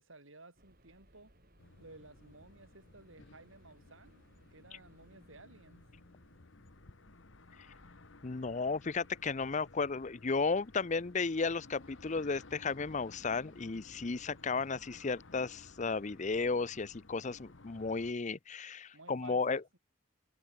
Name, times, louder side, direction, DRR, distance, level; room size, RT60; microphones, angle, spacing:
voice 1, 0.0-1.3 1.8-4.2 4.5-5.8 18.9-19.8, right 2 dB, 80° right, 6.9 m, -56 dB
sound 1, 0.6-17.6, right 1 dB, 50° right, 7.7 m, -68 dB
sound 2, 1.6-18.1, left 2 dB, 70° left, 1.3 m, -57 dB
voice 2, 8.2-19.6, left 4 dB, 35° left, 0.6 m, -34 dB
head